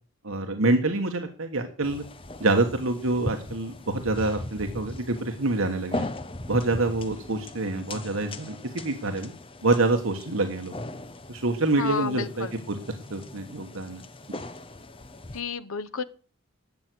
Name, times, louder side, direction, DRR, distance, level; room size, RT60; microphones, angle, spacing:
voice 1, 0.2-2.0 2.4-6.1 6.5-9.3 9.6-10.7 11.3-12.8 13.1-14.0, right 2 dB, 75° right, 5 dB, 1.5 m, -26 dB
sound 1, 1.8-15.4, left 2 dB, 25° left, 0.9 m, -39 dB
voice 2, 11.8-12.5 15.3-16.0, left 5 dB, 85° left, 14 dB, 0.9 m, -31 dB
12.5 x 8.2 x 7.9 m, 0.40 s
head